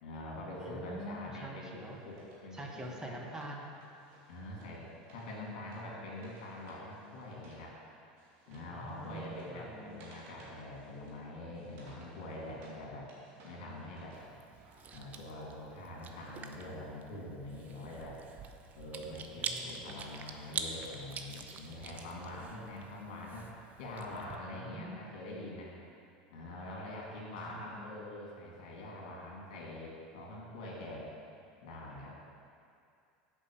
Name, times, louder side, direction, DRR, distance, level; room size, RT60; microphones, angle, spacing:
voice 1, 0.0-3.2 4.3-7.8 8.5-13.1 13.4-14.2 14.9-18.2 18.7-25.7 26.3-31.1 31.6-32.1, left 1 dB, 75° left, -3 dB, 2.3 m, -45 dB
voice 2, 0.6-2.0 2.5-3.7 8.7-10.0 19.0-20.0 22.5-22.7 24.5-25.1 27.1-27.9, right 1 dB, 15° right, 0 dB, 1.4 m, -46 dB
Wood, 1.6-7.7 7.9-12.8 13.1-14.8, right 2 dB, 60° right, 2.2 m, -60 dB
Chewing mastication, 14.1-24.4, right 6 dB, 35° right, 0.7 m, -45 dB
7.1 x 5.2 x 7.0 m, 2.5 s
hypercardioid pair, 100°, 5 cm